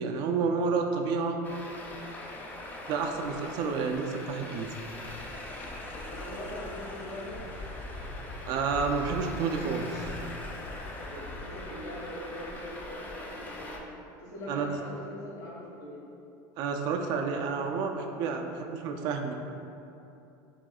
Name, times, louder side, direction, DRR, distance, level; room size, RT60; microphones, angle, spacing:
voice 1, 0.0-1.4 2.9-4.7 8.5-10.1 14.5-14.7 16.6-19.3, right 5 dB, 50° right, 3 dB, 0.3 m, -30 dB
Traffic noise roadway noise, 1.4-13.8, left 1 dB, 20° left, 0.4 m, -42 dB
Waves surf, 4.8-12.1, left 1 dB, 75° left, 1.0 m, -44 dB
voice 2, 5.8-7.4 10.7-13.8 14.2-16.0, left 1 dB, 45° left, -6 dB, 1.4 m, -42 dB
6.3 x 3.1 x 2.3 m, 2.8 s
cardioid pair, 145°, 9 cm